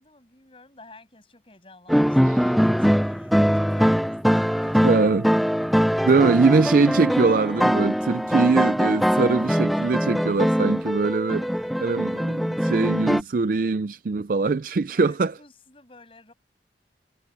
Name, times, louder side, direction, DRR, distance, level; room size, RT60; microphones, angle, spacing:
voice 1, 0.0-4.9 10.3-10.4 14.9-16.3, left 2 dB, 30° left, 7.3 m, -51 dB
sound 1, 1.9-13.2, equal, ahead, 0.5 m, -22 dB
voice 2, 4.8-5.3 6.0-11.5 11.8-15.3, right 4 dB, 50° right, 0.4 m, -22 dB
head